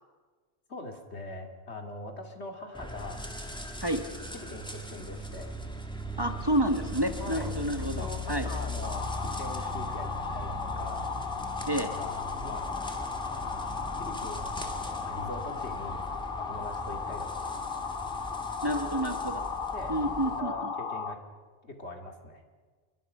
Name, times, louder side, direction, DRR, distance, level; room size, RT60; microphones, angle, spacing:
voice 1, 0.7-3.2 4.4-5.5 7.2-7.5 7.8-11.1 11.8-12.7 14.0-16.1 16.4-17.6 19.7-21.2 21.6-22.4, left 2 dB, 80° left, 3 dB, 2.8 m, -42 dB
sound 1, 2.7-20.4, equal, 5° left, 2.1 m, -39 dB
voice 2, 6.2-8.5 11.7-11.9 18.6-19.5 19.9-20.7, right 1 dB, 20° right, 6 dB, 1.4 m, -29 dB
sound 2, 8.8-21.2, left 5 dB, 55° left, 1.2 m, -35 dB
29.0 x 22.5 x 5.6 m, 1.5 s
omnidirectional pair, 1.1 m